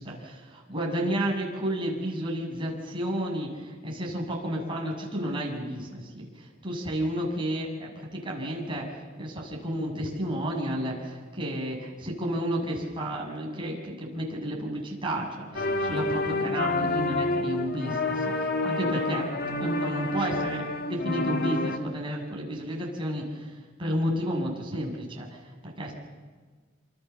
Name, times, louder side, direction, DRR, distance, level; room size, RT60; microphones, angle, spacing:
voice 1, 0.0-19.3 19.6-25.9, equal, 25° right, -1 dB, 7.4 m, -32 dB
sound 1, 15.6-21.8, left 2 dB, 50° left, 1.9 m, -28 dB
28.0 x 27.0 x 7.2 m, 1.4 s
head